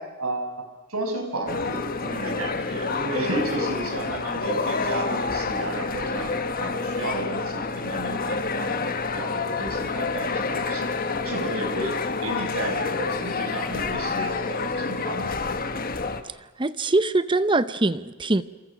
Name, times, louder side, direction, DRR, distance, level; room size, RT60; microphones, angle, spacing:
voice 1, 0.0-6.3 6.6-15.3, right 1 dB, 85° right, 6.8 m, -32 dB
sound 1, 1.5-16.2, left 4 dB, 40° left, 1.5 m, -28 dB
voice 2, 16.2-18.4, right 2 dB, 25° right, 0.7 m, -23 dB
27.5 x 27.5 x 6.2 m
head